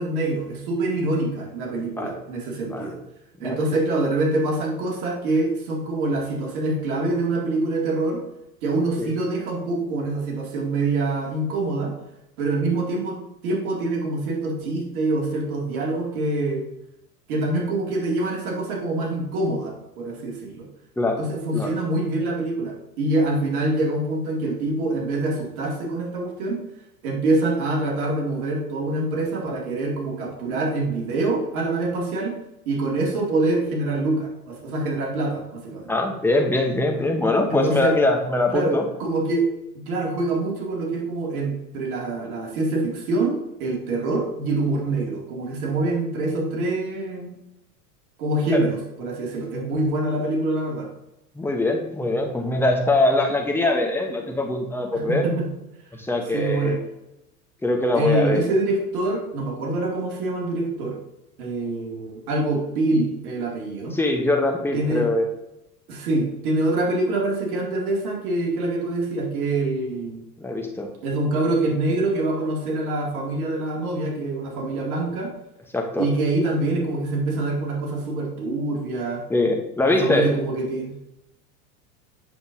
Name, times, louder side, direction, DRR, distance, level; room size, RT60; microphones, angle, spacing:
voice 1, 0.0-3.0 3.4-8.2 8.6-11.9 12.4-13.2 13.4-16.7 17.3-20.7 21.2-26.6 27.0-32.3 32.7-35.9 37.5-38.0 38.5-38.7 39.0-39.5 39.9-47.4 48.2-50.9 54.9-55.5 56.3-56.8 57.9-61.0 61.4-64.0 64.7-65.1 65.9-70.2 71.0-75.3 76.0-79.2 79.9-80.9, right 2 dB, 65° right, -1 dB, 2.4 m, -25 dB
voice 2, 35.9-38.9 48.5-48.7 51.4-55.2 55.9-56.8 57.6-58.4 63.9-65.3 70.4-70.9 75.7-76.1 79.3-80.3, left 2 dB, 5° left, 2 dB, 0.9 m, -22 dB
7.7 x 6.7 x 2.7 m, 0.89 s
hypercardioid pair, 100°, 48 cm